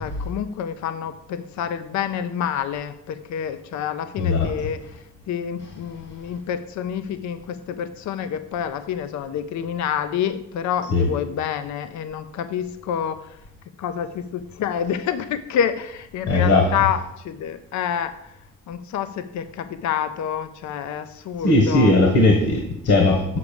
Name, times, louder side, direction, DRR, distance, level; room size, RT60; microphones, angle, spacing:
voice 1, 0.0-4.8 5.3-13.4 13.8-18.3 18.7-21.9, left 8 dB, 70° left, 10 dB, 0.6 m, -28 dB
voice 2, 4.2-4.5 10.9-11.1 16.3-16.7 21.4-23.4, left 2 dB, 50° left, 1 dB, 1.4 m, -18 dB
6.7 x 4.9 x 6.8 m, 0.82 s
cardioid pair, 90°, 30 cm